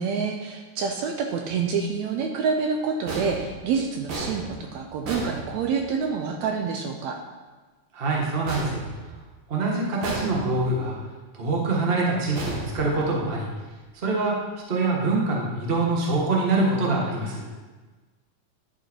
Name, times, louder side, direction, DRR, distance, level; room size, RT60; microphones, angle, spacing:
voice 1, 0.0-7.2, right 5 dB, 75° right, 3 dB, 1.8 m, -27 dB
sound 1, 3.1-6.1 8.5-9.5 10.0-10.8 12.3-13.4, right 2 dB, 50° right, 1.6 m, -35 dB
voice 2, 7.9-8.8 9.5-11.0 11.3-13.5 14.0-14.3 14.7-17.4, right 3 dB, 35° right, -2 dB, 0.9 m, -24 dB
10.5 x 5.3 x 4.5 m, 1.3 s
omnidirectional pair, 3.5 m